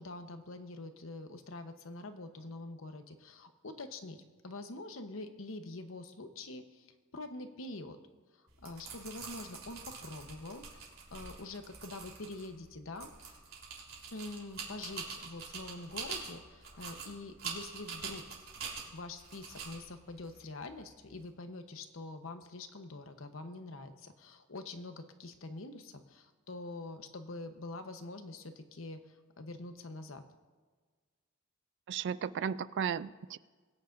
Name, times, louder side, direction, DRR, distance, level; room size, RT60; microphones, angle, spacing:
voice 1, 0.0-6.9 7.1-8.0 8.3-13.4 14.1-18.2 18.9-30.2, left 2 dB, 70° left, 7 dB, 1.0 m, -45 dB
sound 1, 8.5-21.2, right 5 dB, 75° right, 3.5 m, -45 dB
voice 2, 31.9-33.4, right 7 dB, 60° right, 17 dB, 0.4 m, -35 dB
22.0 x 9.4 x 2.6 m, 1.4 s
head